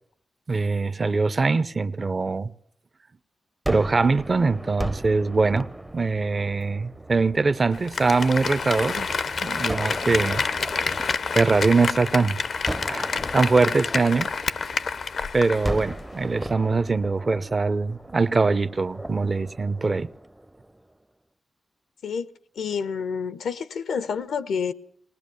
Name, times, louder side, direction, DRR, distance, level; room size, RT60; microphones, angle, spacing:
voice 1, 0.5-2.5 3.7-5.7 5.9-9.1 9.4-10.4 11.3-12.4 12.9-14.3 15.3-20.1, right 4 dB, 45° right, 0.9 m, -22 dB
Gunshot gunfire, 3.7-8.8 9.7-12.1 12.7-15.1 15.6-20.9, right 1 dB, 10° right, 0.7 m, -37 dB
sound 1, 3.8-17.2, right 3 dB, 60° right, 1.5 m, -49 dB
Applause, 7.7-15.9 16.2-16.3, left 5 dB, 70° left, 0.8 m, -28 dB
voice 2, 22.0-24.7, left 6 dB, 90° left, 1.0 m, -29 dB
20.0 x 19.0 x 6.9 m
cardioid pair, 50°, 0 cm